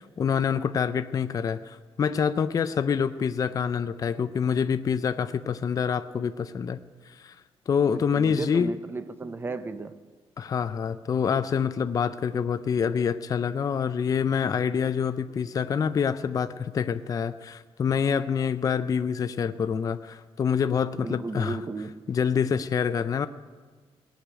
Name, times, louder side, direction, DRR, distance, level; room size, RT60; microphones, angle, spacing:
voice 1, 0.0-6.8 7.2-7.3 7.7-8.7 10.4-21.6 22.1-23.3, left 7 dB, 35° left, 0.4 m, -26 dB
voice 2, 7.9-10.0 21.0-22.0, right 3 dB, 20° right, 0.6 m, -34 dB
18.5 x 6.5 x 8.9 m
wide cardioid pair, 170°, 11 cm